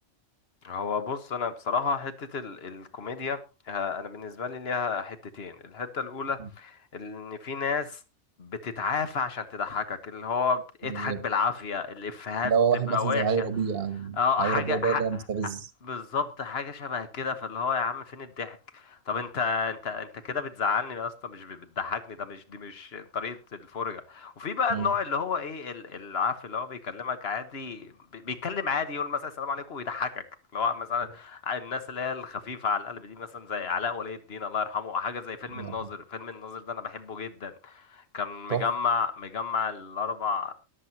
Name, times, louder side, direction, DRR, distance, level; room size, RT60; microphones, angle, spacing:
voice 1, 0.6-3.4 3.7-8.0 8.4-12.5 12.9-13.5 14.2-15.0 15.8-30.2 30.5-40.5, left 5 dB, 55° left, 1.5 m, -31 dB
voice 2, 10.8-11.2 12.4-15.7 24.7-24.9 35.5-35.9 38.5-38.7, right 6 dB, 50° right, 1.3 m, -28 dB
22.5 x 8.0 x 2.9 m
omnidirectional pair, 1.3 m